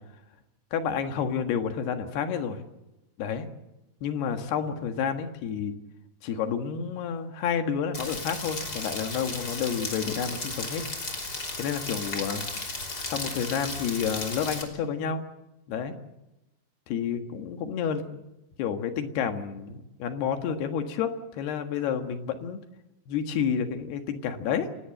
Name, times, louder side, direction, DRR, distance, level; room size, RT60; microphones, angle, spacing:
voice 1, 0.7-2.6 3.2-3.5 4.0-5.7 6.2-10.8 11.6-12.4 13.1-15.3 15.7-15.9 16.9-18.0 18.6-22.6 23.1-24.7, left 7 dB, 80° left, 7 dB, 3.7 m, -30 dB
Rain, 7.9-14.6, left 3 dB, 25° left, 3.4 m, -35 dB
29.5 x 17.5 x 7.8 m, 0.98 s
omnidirectional pair, 4.6 m